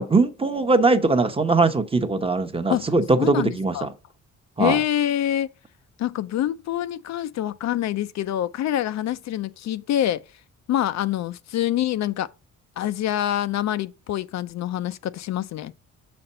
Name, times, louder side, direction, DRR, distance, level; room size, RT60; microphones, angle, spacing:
voice 1, 0.0-3.9 4.6-4.8, right 3 dB, 20° right, 0.8 m, -21 dB
voice 2, 3.2-3.9 4.6-5.5 6.0-10.2 10.7-12.3 12.8-15.7, left 12 dB, 65° left, 0.5 m, -26 dB
6.4 x 4.3 x 5.5 m
cardioid pair, 90°, 30 cm